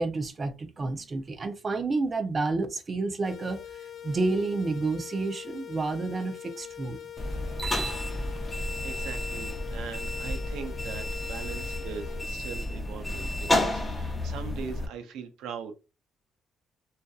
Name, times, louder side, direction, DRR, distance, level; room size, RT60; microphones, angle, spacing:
voice 1, 0.0-3.6 4.0-7.0, right 3 dB, 35° right, 0.5 m, -30 dB
sound 1, 3.2-12.2, left 10 dB, 55° left, 0.4 m, -43 dB
sound 2, 7.2-14.9, left 1 dB, 20° left, 0.7 m, -31 dB
voice 2, 8.4-15.7, right 6 dB, 90° right, 0.5 m, -41 dB
2.5 x 2.4 x 2.3 m
cardioid pair, 90°, 0 cm